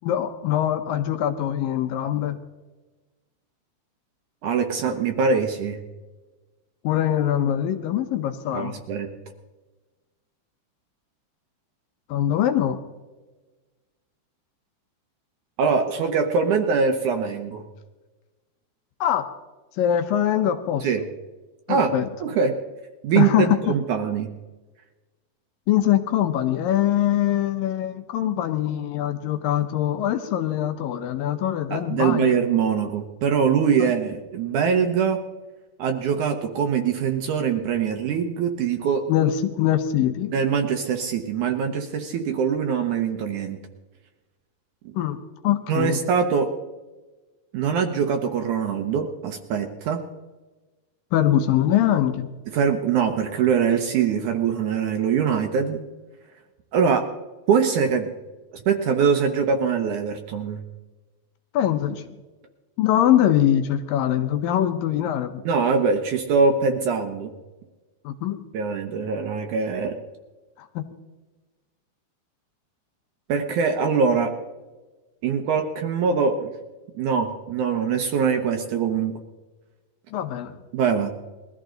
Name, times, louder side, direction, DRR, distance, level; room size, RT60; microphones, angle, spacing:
voice 1, 0.0-2.4 6.8-8.8 12.1-12.8 19.0-19.3 19.8-20.9 21.7-22.1 23.2-23.8 25.7-32.4 33.8-33.9 39.1-40.3 44.9-45.2 45.4-46.0 51.1-52.3 61.5-62.0 62.8-65.4 68.1-68.4 70.6-70.8 80.1-80.6, left 11 dB, 75° left, 8 dB, 2.4 m, -23 dB
voice 2, 4.4-5.8 8.5-9.1 15.6-17.6 20.8-21.0 21.7-21.9 22.2-22.5 23.0-24.3 31.7-35.2 35.8-39.1 40.3-43.6 44.8-44.9 45.7-46.5 47.5-50.0 52.5-55.8 56.7-57.1 57.5-58.1 58.5-60.6 65.5-67.3 68.5-69.9 73.3-74.3 75.2-76.5 77.0-79.1 80.7-81.1, right 6 dB, 70° right, 5 dB, 2.0 m, -23 dB
21.0 x 14.5 x 3.9 m, 1.2 s
omnidirectional pair, 4.4 m